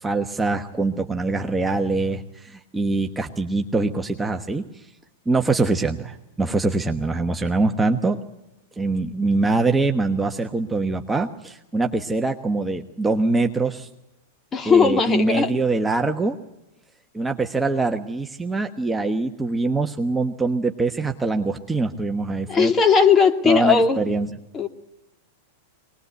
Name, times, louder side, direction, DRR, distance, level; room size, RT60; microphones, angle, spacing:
voice 1, 0.0-4.9 5.3-8.2 8.8-13.9 14.6-16.4 17.1-22.7 23.4-24.3, right 3 dB, 10° right, 3 dB, 1.2 m, -23 dB
voice 2, 14.5-15.5 22.5-24.0 24.5-24.7, left 6 dB, 25° left, 5 dB, 2.2 m, -17 dB
22.5 x 20.0 x 8.2 m, 0.94 s
hypercardioid pair, 110°, 0 cm